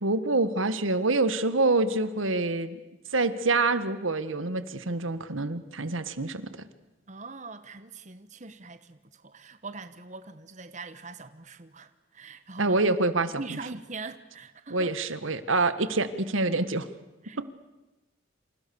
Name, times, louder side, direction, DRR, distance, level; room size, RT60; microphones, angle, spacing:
voice 1, 0.0-2.8 3.1-6.5 12.6-13.6 14.7-16.9, right 3 dB, 85° right, 1.5 m, -26 dB
voice 2, 7.1-12.8 13.4-14.9 17.2-17.5, right 3 dB, 40° right, 1.1 m, -42 dB
28.0 x 27.5 x 7.0 m
head